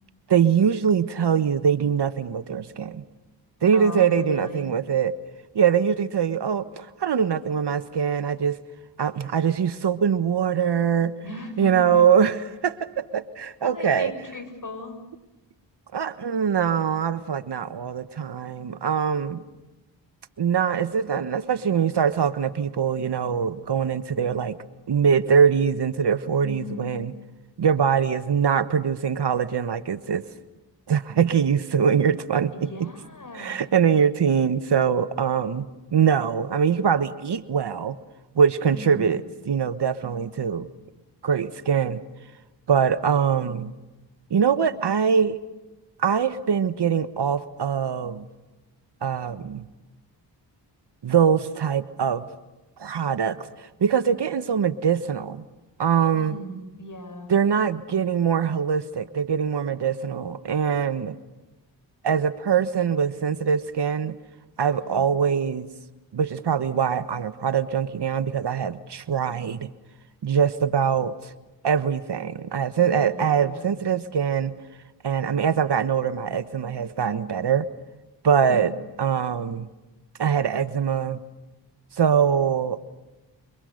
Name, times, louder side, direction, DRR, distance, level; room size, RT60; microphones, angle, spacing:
voice 1, 0.3-3.0 3.6-5.1 5.5-8.6 9.0-11.1 11.6-14.1 15.9-19.4 20.4-24.6 24.9-27.1 27.6-30.2 30.9-32.9 33.3-38.0 38.3-40.7 41.2-42.0 42.7-43.7 44.3-45.4 46.0-48.3 49.0-49.6 51.0-52.3 52.8-55.4 55.8-56.3 57.3-61.2 62.0-64.2 64.6-65.7 66.1-69.7 70.2-71.3 71.6-74.5 75.0-77.7 78.2-78.7 79.0-79.7 80.2-81.2 82.0-82.8, right 7 dB, 60° right, 12 dB, 1.3 m, -23 dB
voice 2, 3.7-4.7 11.2-12.0 13.6-15.0 26.4-27.0 32.5-33.6 38.7-39.1 56.1-57.3 64.8-65.0 73.0-73.6 78.5-78.6, left 2 dB, 45° left, 8 dB, 6.2 m, -38 dB
28.5 x 25.5 x 6.6 m, 1.1 s
cardioid pair, 55°, 45 cm